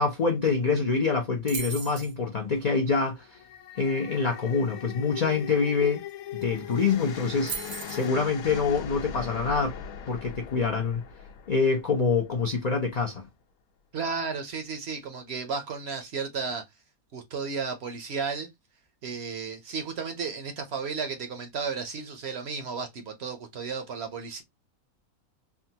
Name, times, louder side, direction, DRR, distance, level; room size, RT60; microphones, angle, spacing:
voice 1, 0.0-3.4 3.8-6.0 6.3-9.7 10.1-11.0 11.5-13.2, left 4 dB, 60° left, 0.4 m, -26 dB
sound 1, 1.5-2.1 6.1-6.2 6.4-6.7 7.5-8.1, right 5 dB, 90° right, 0.3 m, -36 dB
sound 2, 3.2-12.5, left 8 dB, 80° left, 1.0 m, -40 dB
voice 2, 13.9-16.6 17.1-18.5 19.0-24.4, right 5 dB, 60° right, 0.8 m, -33 dB
3.5 x 2.2 x 2.7 m
omnidirectional pair, 1.5 m